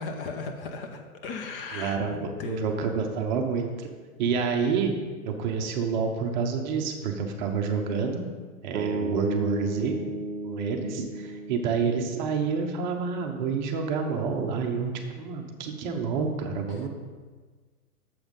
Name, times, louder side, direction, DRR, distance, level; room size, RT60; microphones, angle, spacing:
voice 1, 0.0-2.7 16.7-16.9, left 4 dB, 40° left, 5 dB, 0.9 m, -36 dB
voice 2, 1.7-3.9 4.2-4.9 5.2-8.2 8.6-10.0 10.4-14.9 15.2-16.9, right 5 dB, 30° right, 3 dB, 0.9 m, -28 dB
sound 1, 8.7-12.9, right 2 dB, 60° right, 0.8 m, -34 dB
7.7 x 7.2 x 5.3 m, 1.4 s
hypercardioid pair, 150°, 44 cm